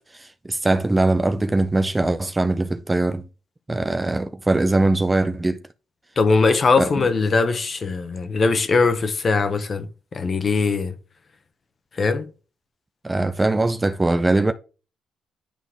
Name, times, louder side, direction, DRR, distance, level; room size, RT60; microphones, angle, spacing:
voice 1, 0.1-3.2 3.7-5.6 6.8-6.9 13.0-14.5, right 2 dB, 15° right, 0.6 m, -21 dB
voice 2, 6.2-10.9 11.9-12.3, left 4 dB, 40° left, 1.3 m, -21 dB
10.5 x 4.0 x 3.7 m
cardioid pair, 90°, 0 cm